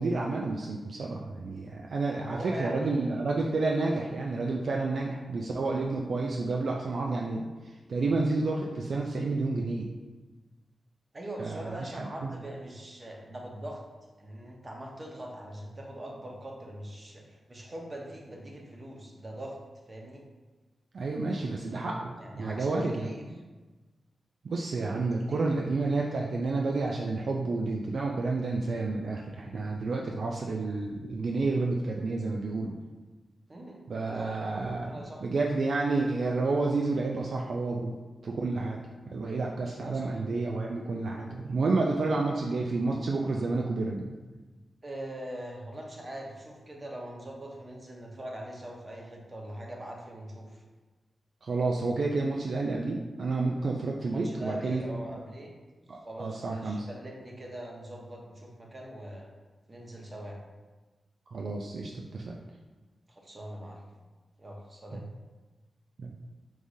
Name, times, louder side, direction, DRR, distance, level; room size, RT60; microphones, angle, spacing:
voice 1, 0.0-7.5 7.9-9.9 11.4-12.3 20.9-23.2 24.4-32.7 33.9-34.9 35.2-37.9 38.2-38.8 39.1-44.2 51.4-54.8 55.9-56.9 61.3-62.4 64.9-65.0 66.0-66.1, right 3 dB, 70° right, 0 dB, 0.3 m, -30 dB
voice 2, 2.2-3.2 11.1-13.8 14.2-19.6 19.9-20.2 22.2-23.2 25.0-26.2 33.5-33.8 34.2-34.4 34.8-35.2 39.8-40.2 44.8-50.6 54.1-55.5 56.0-59.3 59.7-60.4 63.1-63.8 64.4-65.0, right 1 dB, 40° right, -1 dB, 1.0 m, -42 dB
4.7 x 3.7 x 2.7 m, 1.2 s
cardioid pair, 50°, 0 cm